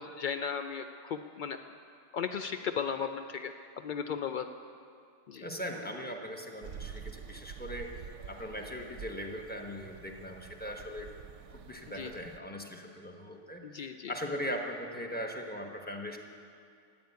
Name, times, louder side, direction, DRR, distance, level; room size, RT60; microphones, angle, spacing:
voice 1, 0.0-1.6 2.1-4.5 5.3-5.5 11.9-12.1 13.6-14.1, left 7 dB, 80° left, 7 dB, 0.4 m, -36 dB
voice 2, 5.4-7.9 8.3-11.1 11.5-16.2, equal, 10° left, 2 dB, 1.1 m, -39 dB
sound 1, 6.6-12.4, right 7 dB, 70° right, 0.9 m, -47 dB
14.0 x 8.6 x 9.4 m, 2.3 s
omnidirectional pair, 1.4 m